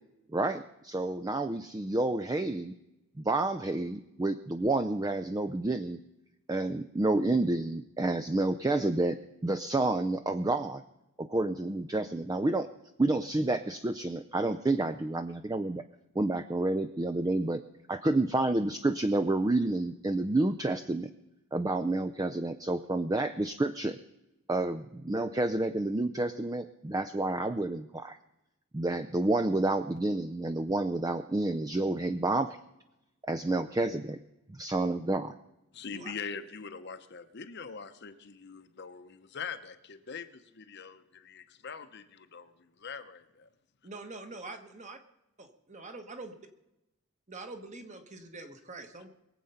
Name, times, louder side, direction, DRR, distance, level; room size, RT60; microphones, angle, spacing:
voice 1, 0.3-2.7 3.2-6.0 6.5-9.2 9.4-10.8 11.2-12.7 13.0-15.8 16.2-17.6 17.9-21.1 21.5-24.0 24.5-28.2 28.7-32.6 33.3-34.2 34.5-35.3, right 2 dB, 15° right, 10 dB, 0.4 m, -29 dB
voice 2, 35.7-43.5, left 5 dB, 50° left, 10 dB, 0.8 m, -43 dB
voice 3, 43.8-45.0 45.7-46.3 47.3-49.1, right 3 dB, 35° right, 6 dB, 1.4 m, -44 dB
22.0 x 7.9 x 5.6 m, 0.93 s
head